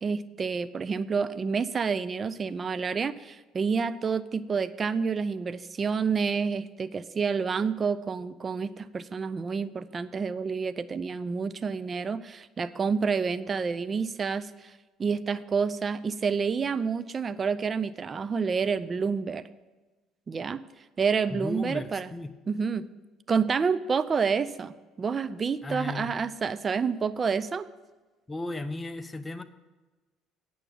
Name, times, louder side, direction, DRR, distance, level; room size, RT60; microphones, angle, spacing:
voice 1, 0.0-14.7 15.0-19.4 20.3-20.6 21.0-22.1 22.5-22.9 23.3-27.7, right 5 dB, 35° right, 15 dB, 0.5 m, -29 dB
voice 2, 21.3-22.3 25.6-26.2 28.3-29.4, left 2 dB, 20° left, 10 dB, 0.6 m, -35 dB
9.0 x 6.1 x 7.1 m, 1.2 s
hypercardioid pair, 60°, 0 cm